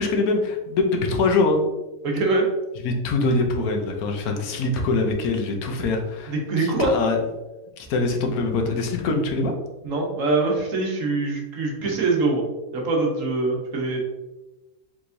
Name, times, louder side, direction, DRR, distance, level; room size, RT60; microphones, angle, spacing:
voice 1, 0.0-1.6 2.8-6.3 6.6-7.2 7.8-9.5 11.8-11.9, left 3 dB, 90° left, 3 dB, 1.2 m, -23 dB
voice 2, 2.0-2.5 6.3-6.9 9.8-12.4 12.7-14.0, right 3 dB, 65° right, -1 dB, 1.3 m, -23 dB
4.6 x 3.6 x 2.6 m, 1.1 s
omnidirectional pair, 1.5 m